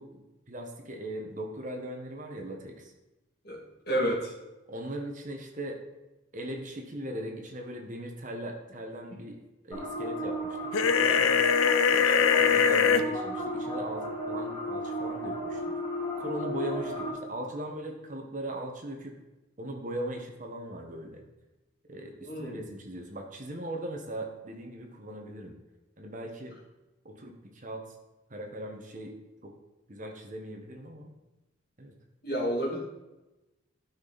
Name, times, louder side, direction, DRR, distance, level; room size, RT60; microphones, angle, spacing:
voice 1, 0.0-2.9 4.7-5.8 6.3-11.4 11.9-15.6 16.2-19.2 19.6-21.2 21.9-25.5 26.0-26.6 27.0-28.0 28.3-29.1 29.4-29.5 29.9-31.1 31.8-31.9, right 1 dB, 40° right, 2 dB, 1.2 m, -39 dB
voice 2, 3.9-4.3 22.2-22.6 32.2-32.8, equal, 50° left, -4 dB, 2.5 m, -29 dB
sound 1, 9.7-17.1, equal, 15° left, 3.0 m, -34 dB
sound 2, 10.7-13.0, left 7 dB, 90° left, 0.6 m, -22 dB
12.5 x 5.9 x 4.0 m, 1.0 s
head